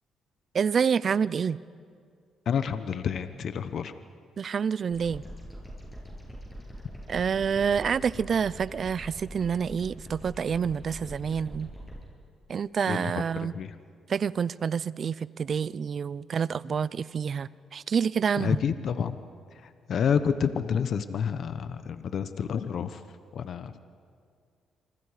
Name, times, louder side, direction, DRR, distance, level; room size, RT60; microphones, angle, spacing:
voice 1, 0.5-1.6 4.4-5.2 7.1-11.7 12.5-13.5 14.1-18.6, right 6 dB, 50° right, 20 dB, 0.5 m, -28 dB
voice 2, 2.5-3.9 12.9-13.8 18.4-19.2 19.5-23.0 23.3-23.8, left 7 dB, 60° left, 11 dB, 0.9 m, -29 dB
sound 1, 4.9-12.0, equal, 10° left, 7.9 m, -43 dB
26.0 x 26.0 x 5.0 m, 2.2 s
cardioid pair, 90°, 0 cm